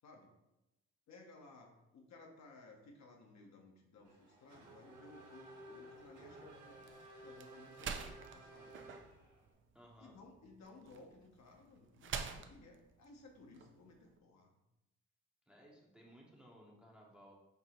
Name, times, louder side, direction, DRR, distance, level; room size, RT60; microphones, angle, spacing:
voice 1, 1.1-8.9 10.0-14.6, left 3 dB, 65° left, 1 dB, 0.8 m, -59 dB
Race car auto racing / Accelerating revving vroom, 4.0-9.5, right 1 dB, 85° right, 1.2 m, -55 dB
sound 1, 5.9-14.2, right 6 dB, 40° right, 0.4 m, -49 dB
voice 2, 9.7-10.2 15.5-17.3, equal, 5° right, -2 dB, 0.6 m, -60 dB
4.4 x 2.1 x 4.1 m, 0.94 s
cardioid pair, 90°, 30 cm